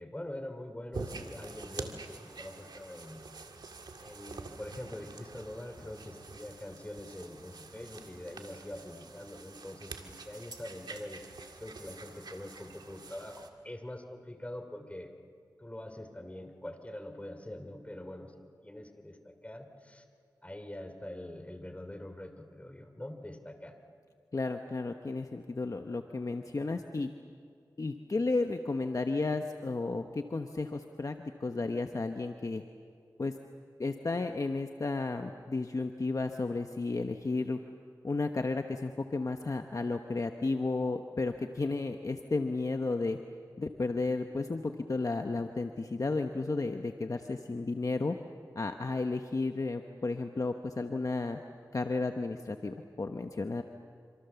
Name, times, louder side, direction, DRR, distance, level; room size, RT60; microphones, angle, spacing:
voice 1, 0.0-3.2 4.0-11.3 11.5-15.1 15.6-18.3 18.6-20.0 20.4-23.7, left 1 dB, 20° left, 7 dB, 3.3 m, -44 dB
sound 1, 0.9-13.5, right 3 dB, 75° right, 2.1 m, -46 dB
voice 2, 24.3-27.1 27.8-32.6 33.2-33.3 33.8-37.6 38.0-43.2 43.6-48.2 48.5-51.4 51.7-53.6, left 3 dB, 50° left, 6 dB, 1.1 m, -33 dB
27.0 x 26.5 x 7.1 m, 2.2 s
cardioid pair, 50°, 7 cm